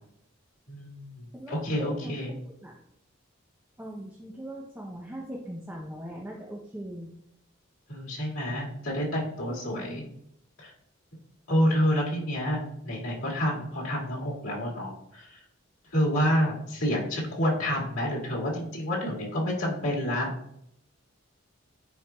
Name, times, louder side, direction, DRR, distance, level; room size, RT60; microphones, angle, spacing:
voice 1, 0.7-2.3 7.9-10.0 10.6-10.7 11.5-15.3 15.9-20.3, equal, 90° left, -4 dB, 2.0 m, -28 dB
voice 2, 1.8-2.8 3.8-7.1 9.4-10.1, right 1 dB, 10° right, -2 dB, 0.7 m, -40 dB
9.5 x 4.5 x 2.3 m, 0.76 s
head